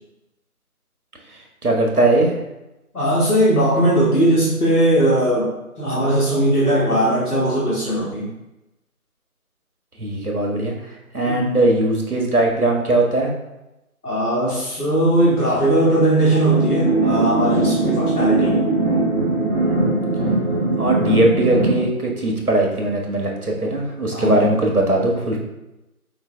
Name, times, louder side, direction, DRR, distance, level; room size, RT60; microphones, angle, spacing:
voice 1, 1.6-2.4 10.0-10.7 11.1-13.3 20.8-25.4, right 2 dB, 75° right, 0 dB, 1.3 m, -19 dB
voice 2, 2.9-8.3 11.2-11.5 14.0-18.6 24.1-24.5, right 1 dB, 85° left, -7 dB, 1.4 m, -19 dB
sound 1, 16.5-21.8, right 2 dB, 40° right, 1.3 m, -20 dB
4.7 x 3.3 x 3.2 m, 0.96 s
figure-of-eight pair, 175°, 44 cm